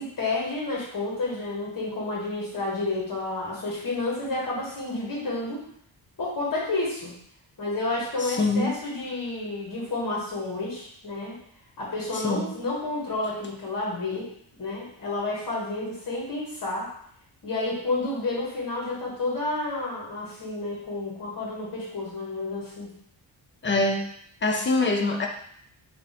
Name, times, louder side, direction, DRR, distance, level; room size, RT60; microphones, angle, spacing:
voice 1, 0.0-5.6 6.2-7.1 7.6-11.4 11.8-14.3 14.6-16.9 17.4-22.9, left 2 dB, 45° left, -5 dB, 1.7 m, -30 dB
voice 2, 8.3-8.7 12.2-12.5 23.6-24.0 24.4-25.3, left 2 dB, 25° left, 2 dB, 0.5 m, -24 dB
3.6 x 2.8 x 4.1 m, 0.66 s
wide cardioid pair, 155°, 47 cm